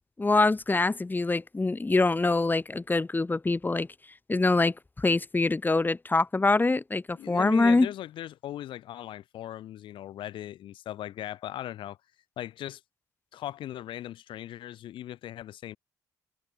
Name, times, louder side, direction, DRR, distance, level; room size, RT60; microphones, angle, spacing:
voice 1, 0.2-3.9 4.3-7.9, left 3 dB, 20° left, 1.6 m, -24 dB
voice 2, 7.1-12.0 12.4-12.8 13.3-15.8, left 12 dB, 60° left, 2.6 m, -38 dB
figure-of-eight pair, 45°, 9 cm